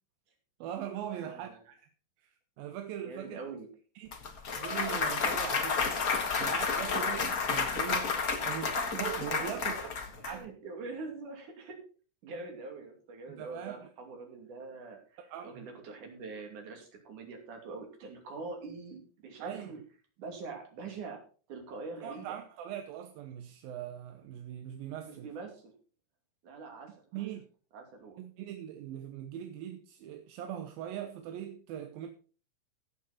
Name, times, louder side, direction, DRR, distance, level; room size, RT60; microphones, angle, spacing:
voice 1, 0.6-1.8 2.2-3.4 4.0-4.1 4.6-5.9 6.4-8.1 8.4-9.9 10.3-10.5 13.4-13.8 15.2-15.7 19.4-19.7 22.0-25.3 27.1-27.4 28.2-32.1, right 10 dB, 80° right, 2.7 m, -41 dB
voice 2, 1.1-1.6 3.0-3.7 6.3-6.4 9.4-9.8 10.1-11.8 12.2-19.8 20.2-21.2 21.5-22.4 25.0-25.7 26.4-27.3 27.7-28.2, right 3 dB, 60° right, 4.1 m, -44 dB
Clapping / Cheering / Applause, 4.1-10.3, left 5 dB, 60° left, 0.9 m, -31 dB
15.5 x 7.7 x 4.2 m
omnidirectional pair, 4.1 m